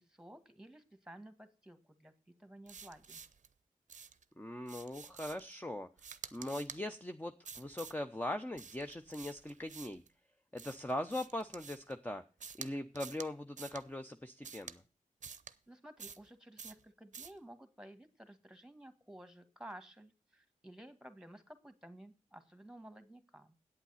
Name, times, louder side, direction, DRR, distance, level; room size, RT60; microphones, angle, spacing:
voice 1, 0.0-3.2 15.7-23.6, right 1 dB, 5° right, 10 dB, 1.7 m, -54 dB
sound 1, 2.7-3.5 3.9-4.2 4.7-5.5 6.0-6.8 7.4-8.0 8.6-10.1 10.6-11.9 12.4-12.7 13.0-13.3 13.6-13.8 14.4-14.8 15.2-15.5 16.0-16.3 16.6-16.8 17.1-17.4, right 6 dB, 60° right, 0.7 m, -49 dB
voice 2, 4.4-5.9 6.3-10.0 10.5-12.2 12.6-14.8, left 1 dB, 10° left, 6 dB, 0.8 m, -40 dB
8.6 x 8.1 x 5.7 m, 0.34 s
cardioid pair, 40°, 14 cm